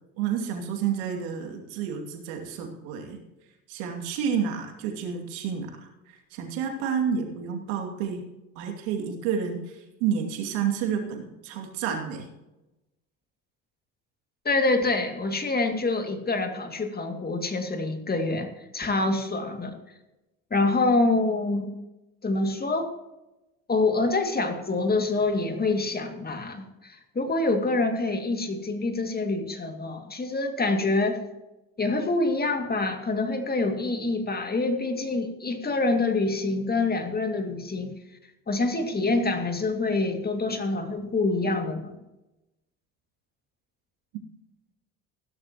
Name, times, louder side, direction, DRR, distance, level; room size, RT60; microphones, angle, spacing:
voice 1, 0.2-3.2 3.7-8.2 8.6-12.3, right 7 dB, 80° right, 2 dB, 2.6 m, -30 dB
voice 2, 14.4-19.8 20.5-21.7 22.2-22.9 23.7-31.2 31.8-37.9 38.5-42.0, left 3 dB, 25° left, 5 dB, 2.3 m, -26 dB
16.0 x 12.0 x 3.0 m, 0.99 s
hypercardioid pair, 75°, 37 cm